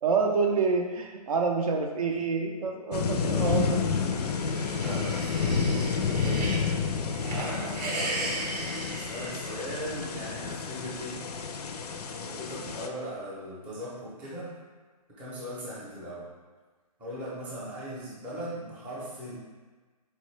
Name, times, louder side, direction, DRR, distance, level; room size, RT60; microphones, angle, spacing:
voice 1, 0.0-3.8, right 4 dB, 60° right, 2 dB, 0.5 m, -27 dB
sound 1, 2.9-12.9, left 5 dB, 75° left, 0.4 m, -30 dB
sound 2, 4.0-6.7 7.1-10.0, right 2 dB, 90° right, 0.8 m, -36 dB
voice 2, 4.6-6.7 7.3-11.2 12.2-14.5 15.2-16.3 17.0-19.3, equal, 5° right, -8 dB, 0.5 m, -39 dB
4.1 x 2.3 x 3.1 m, 1.3 s
hypercardioid pair, 150°, 20 cm